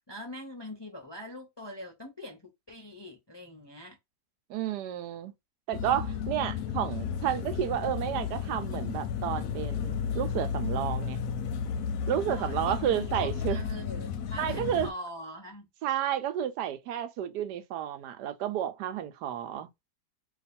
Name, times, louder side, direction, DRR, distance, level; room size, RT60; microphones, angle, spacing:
voice 1, 0.1-4.0 12.3-15.7, left 1 dB, 35° left, 0.4 m, -43 dB
voice 2, 4.5-5.3 5.7-11.2 12.1-13.6 14.4-14.9 15.8-19.7, right 10 dB, 90° right, 1.2 m, -31 dB
sound 1, 5.7-14.9, left 7 dB, 70° left, 0.9 m, -33 dB
2.9 x 2.5 x 4.1 m
omnidirectional pair, 1.7 m